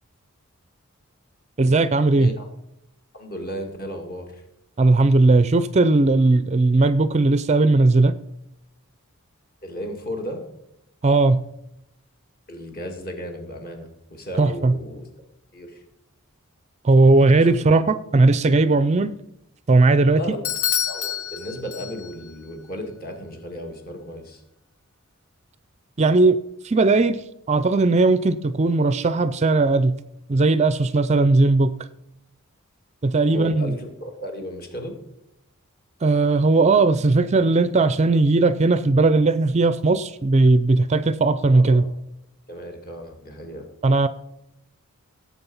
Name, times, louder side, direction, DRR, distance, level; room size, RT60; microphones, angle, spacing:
voice 1, 1.6-2.3 4.8-8.1 11.0-11.4 14.4-14.7 16.8-19.2 19.7-20.2 26.0-26.4 26.6-27.2 27.5-29.9 30.3-31.7 33.0-33.7 36.0-41.8 43.8-44.1, right 3 dB, 30° right, 14 dB, 0.4 m, -17 dB
voice 2, 3.1-4.4 9.6-10.4 12.5-15.1 15.5-15.8 17.4-17.6 20.2-20.4 20.9-24.4 33.3-35.0 41.5-41.9 42.5-43.7, equal, 45° left, 3 dB, 2.4 m, -34 dB
Bell / Doorbell, 20.4-22.3, left 9 dB, 75° left, 1.0 m, -27 dB
17.5 x 7.6 x 5.5 m, 0.82 s
head